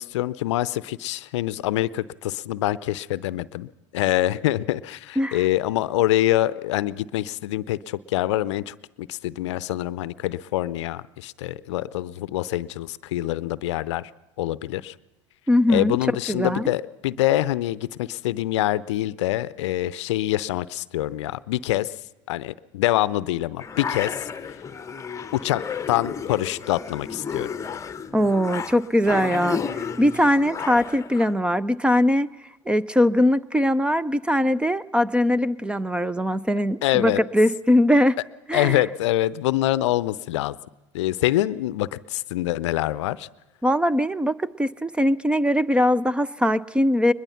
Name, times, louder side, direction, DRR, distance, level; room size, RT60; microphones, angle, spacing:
voice 1, 0.0-14.1 14.4-14.9 15.7-21.9 22.3-24.3 25.3-25.6 25.9-27.5 36.8-37.2 38.5-40.6 40.9-43.3, left 15 dB, 70° left, 18 dB, 0.6 m, -25 dB
voice 2, 15.5-16.0 16.3-16.6 28.1-29.6 30.0-32.3 32.7-38.2 38.5-38.8 43.6-47.1, left 1 dB, 5° right, 20 dB, 0.6 m, -21 dB
sound 1, 23.6-31.3, left 6 dB, 20° left, 1.0 m, -32 dB
22.0 x 21.0 x 5.8 m, 1.1 s
hypercardioid pair, 85°, 16 cm